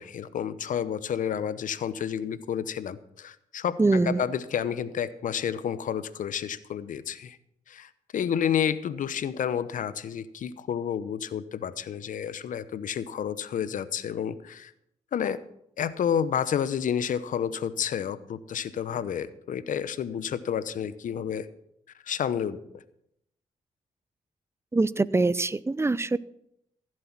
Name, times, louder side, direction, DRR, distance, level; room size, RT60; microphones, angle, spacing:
voice 1, 0.0-7.4 7.7-14.7 15.1-15.4 15.8-21.5 22.1-22.6, left 8 dB, 70° left, 15 dB, 0.9 m, -30 dB
voice 2, 3.8-4.2 24.7-26.2, right 3 dB, 20° right, 19 dB, 0.6 m, -23 dB
15.0 x 7.7 x 6.0 m, 0.76 s
supercardioid pair, 50°, 14 cm